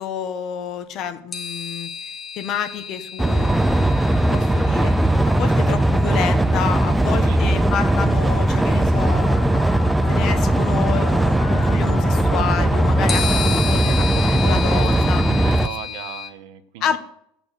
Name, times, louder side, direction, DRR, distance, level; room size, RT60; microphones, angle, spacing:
voice 1, 0.0-1.9 2.4-3.6 4.3-5.0 5.3-9.7 10.1-15.3 16.8-17.0, left 8 dB, 35° left, 10 dB, 1.1 m, -29 dB
sound 1, 1.3-7.0 8.2-8.3 13.1-16.3, left 6 dB, 20° left, 1.4 m, -32 dB
sound 2, 3.2-15.7, right 1 dB, 5° right, 0.5 m, -18 dB
voice 2, 6.8-7.4 14.1-17.0, right 10 dB, 60° right, 10 dB, 1.3 m, -37 dB
Telephone, 9.1-15.9, left 12 dB, 85° left, 1.0 m, -38 dB
14.5 x 9.1 x 6.8 m, 0.71 s
supercardioid pair, 165°, 0 cm